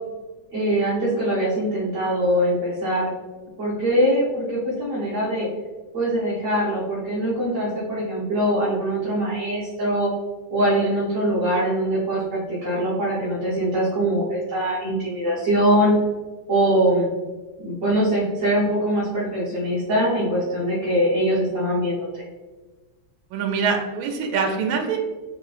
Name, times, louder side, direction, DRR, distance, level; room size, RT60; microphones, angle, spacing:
voice 1, 0.5-3.1 3.6-5.5 5.9-10.1 10.5-15.9 16.5-17.1 17.6-22.2, right 1 dB, 50° right, -10 dB, 1.1 m, -22 dB
voice 2, 23.3-25.0, right 5 dB, 80° right, 2 dB, 1.4 m, -24 dB
3.8 x 3.7 x 2.4 m, 1.3 s
omnidirectional pair, 2.2 m